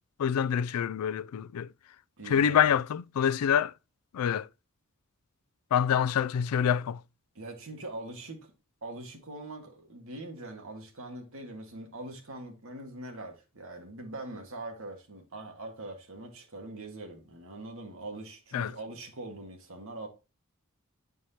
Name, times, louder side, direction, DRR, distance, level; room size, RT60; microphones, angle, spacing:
voice 1, 0.2-1.7 2.3-3.7 4.1-4.5 5.7-7.0 18.5-18.7, left 8 dB, 90° left, 0.3 m, -26 dB
voice 2, 2.2-2.7 7.3-8.5 8.8-20.1, right 2 dB, 65° right, 1.8 m, -42 dB
9.3 x 4.6 x 2.8 m
head